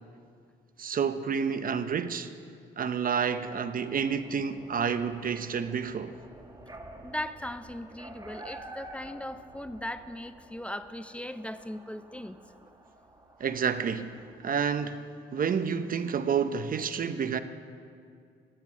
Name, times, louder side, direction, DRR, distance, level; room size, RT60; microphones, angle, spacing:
voice 1, 0.8-2.3 2.8-6.1 13.4-14.1 14.4-15.0 15.3-17.4, right 6 dB, 45° right, 0.7 m, -29 dB
sound 1, 3.1-15.0, right 1 dB, 20° right, 1.5 m, -50 dB
voice 2, 7.0-12.4, left 1 dB, 5° left, 0.5 m, -38 dB
14.5 x 8.9 x 6.2 m
cardioid pair, 90°, 20 cm